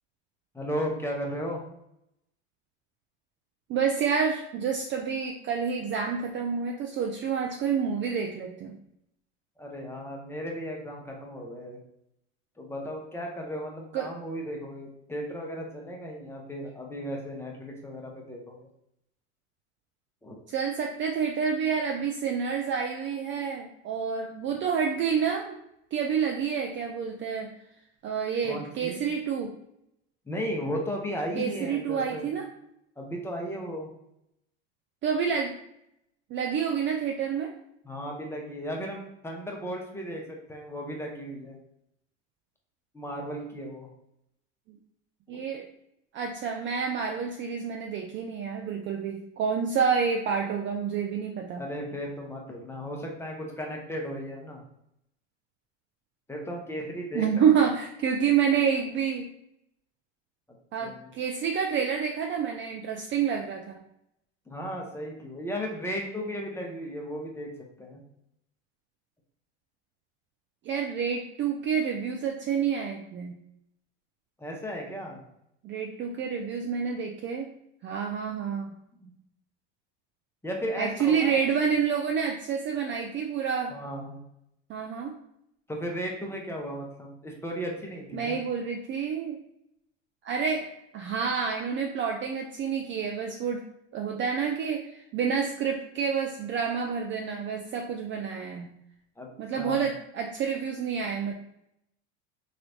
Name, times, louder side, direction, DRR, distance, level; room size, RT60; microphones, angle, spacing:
voice 1, 0.5-1.6 9.6-11.8 12.6-18.7 20.2-20.4 28.4-29.0 30.3-32.3 33.0-33.9 37.8-41.6 42.9-43.9 45.3-45.4 51.6-54.6 56.3-57.2 60.8-61.1 64.5-67.5 67.8-68.0 74.4-75.2 79.0-79.1 80.4-81.4 83.7-84.2 85.7-88.4 99.2-99.3 99.6-99.8, equal, 5° left, 0 dB, 0.7 m, -35 dB
voice 2, 3.7-8.8 13.9-14.1 20.5-25.6 25.9-27.5 28.0-29.5 31.4-32.5 35.0-35.5 36.3-37.5 44.7-44.8 45.3-45.7 46.1-51.6 57.1-59.3 60.7-63.8 70.6-73.4 75.6-77.5 77.8-78.7 80.8-83.7 84.7-85.2 88.1-89.4 90.2-93.6 93.9-98.7 99.4-101.3, right 6 dB, 35° right, 2 dB, 0.4 m, -28 dB
3.2 x 2.9 x 2.7 m, 0.78 s
hypercardioid pair, 90°, 36 cm